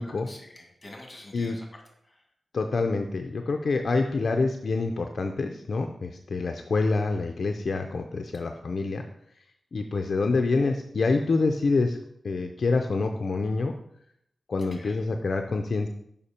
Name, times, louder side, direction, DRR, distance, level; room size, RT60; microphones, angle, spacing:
voice 1, 0.0-1.7 2.0-2.2 14.7-15.0, left 1 dB, 25° left, 1 dB, 2.0 m, -47 dB
voice 2, 2.5-9.0 9.7-12.0 12.2-13.7 14.5-15.9, left 3 dB, 65° left, 4 dB, 0.5 m, -26 dB
6.6 x 5.5 x 4.3 m, 0.73 s
wide cardioid pair, 100°, 0 cm